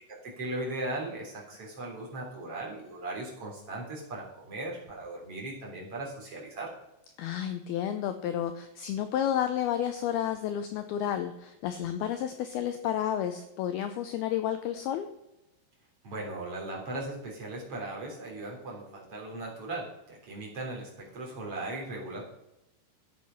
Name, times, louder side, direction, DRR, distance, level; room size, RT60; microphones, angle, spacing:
voice 1, 0.2-6.7 16.0-22.2, right 2 dB, 35° right, -2 dB, 3.9 m, -38 dB
voice 2, 7.2-15.1, left 10 dB, 80° left, 9 dB, 2.3 m, -31 dB
14.0 x 8.2 x 5.7 m, 0.92 s
omnidirectional pair, 5.2 m